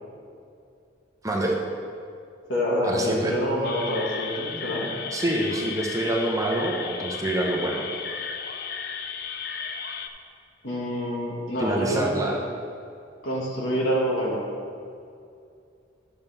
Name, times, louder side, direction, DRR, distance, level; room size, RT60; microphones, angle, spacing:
voice 1, 1.2-1.6 2.8-3.4 5.1-7.9 11.6-12.4, right 1 dB, 15° right, -1 dB, 0.9 m, -26 dB
voice 2, 2.5-4.9 10.6-12.3 13.2-14.5, equal, 80° left, -4 dB, 2.1 m, -27 dB
sound 1, 3.6-10.1, left 6 dB, 55° left, 0.5 m, -34 dB
11.5 x 6.9 x 3.6 m, 2.4 s
head